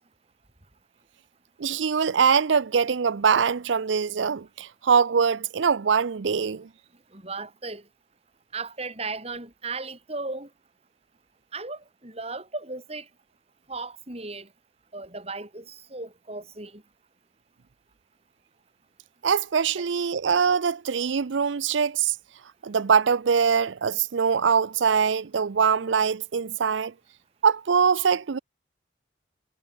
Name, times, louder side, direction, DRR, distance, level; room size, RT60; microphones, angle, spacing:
voice 1, 1.6-6.7 19.2-22.1 22.6-26.9 27.4-28.4, right 6 dB, 80° right, 0.5 m, -23 dB
voice 2, 7.1-7.8 8.5-10.5 11.5-13.1 13.7-14.5 14.9-16.8 19.8-19.9, right 3 dB, 35° right, 4.7 m, -36 dB
head